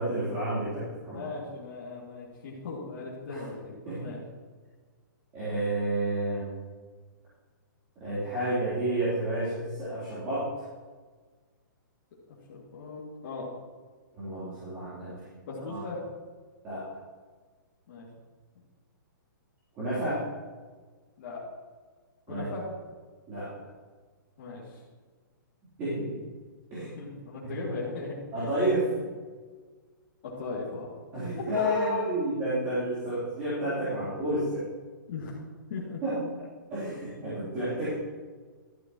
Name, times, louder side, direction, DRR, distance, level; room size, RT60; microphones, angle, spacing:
voice 1, 0.0-1.3 3.3-3.4 3.9-4.1 5.3-6.5 8.0-10.7 14.2-15.2 15.7-15.8 16.6-16.8 19.8-20.2 22.3-22.5 23.3-23.5 25.8-26.1 26.7-26.9 27.4-27.5 28.3-28.9 31.1-34.6 36.0-36.2 36.7-37.9, right 1 dB, 15° right, -13 dB, 3.6 m, -30 dB
voice 2, 1.1-4.2 12.5-13.5 15.4-16.0 17.9-18.1 21.2-21.4 22.3-22.7 24.4-24.8 27.0-28.5 30.2-31.0 31.3-32.5 35.1-35.4 35.7-36.0 37.4-37.5, left 3 dB, 35° left, -8 dB, 2.5 m, -37 dB
13.5 x 10.5 x 3.1 m, 1.5 s
hypercardioid pair, 175°, 11 cm